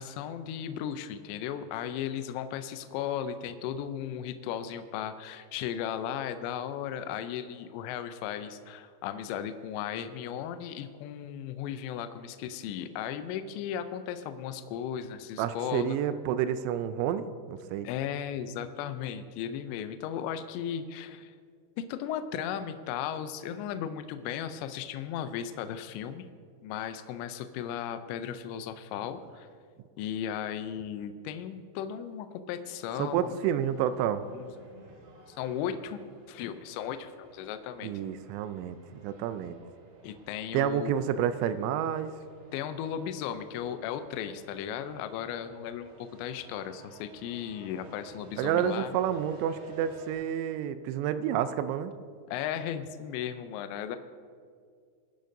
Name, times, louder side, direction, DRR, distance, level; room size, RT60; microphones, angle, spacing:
voice 1, 0.0-16.0 17.8-21.3 21.8-26.3 26.6-29.5 30.0-33.3 34.3-34.5 35.3-36.0 36.3-37.9 40.0-41.0 42.5-48.9 52.3-54.0, left 9 dB, 80° left, 10 dB, 2.7 m, -36 dB
voice 2, 15.4-17.9 33.0-34.3 37.8-39.6 40.5-42.1 48.4-51.9, right 9 dB, 85° right, 12 dB, 2.8 m, -29 dB
sound 1, 32.7-50.1, right 2 dB, 60° right, 3.2 m, -54 dB
22.0 x 10.5 x 2.7 m, 2.1 s
omnidirectional pair, 5.4 m